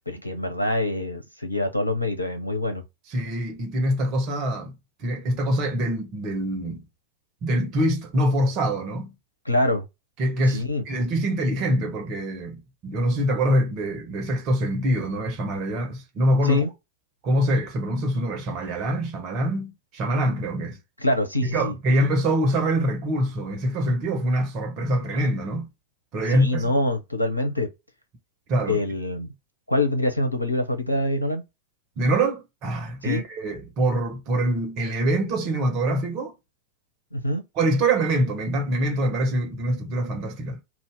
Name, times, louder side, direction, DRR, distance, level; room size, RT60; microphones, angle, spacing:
voice 1, 0.1-2.8 9.5-9.8 10.5-10.8 16.4-16.7 21.0-21.8 26.3-27.7 28.7-29.3 29.7-31.4 33.0-33.2 37.1-37.4, left 1 dB, 85° left, 0.8 m, -25 dB
voice 2, 3.1-4.7 5.0-6.8 7.4-9.1 10.2-12.6 12.8-16.6 17.2-20.8 21.5-25.7 26.1-26.7 28.5-28.8 32.0-36.3 37.5-40.6, right 1 dB, 40° right, 1.4 m, -24 dB
2.8 x 2.5 x 3.5 m
figure-of-eight pair, 90°, 0 cm